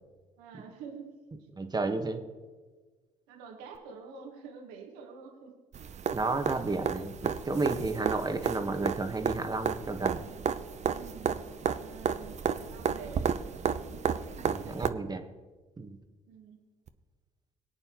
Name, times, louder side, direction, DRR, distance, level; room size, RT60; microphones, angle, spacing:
voice 1, 0.4-1.1 3.3-5.5 5.8-5.9 10.9-11.4 11.8-13.2 13.7-14.8 16.3-16.6, right 5 dB, 80° right, 2 dB, 1.8 m, -48 dB
voice 2, 1.5-2.2 6.1-10.2 14.4-15.2 15.8-16.0, right 3 dB, 25° right, 6 dB, 1.5 m, -32 dB
sound 1, 5.7-14.9 16.9-17.0, right 7 dB, 45° right, 0.7 m, -32 dB
21.5 x 8.7 x 3.1 m, 1.3 s
hypercardioid pair, 55°, 17 cm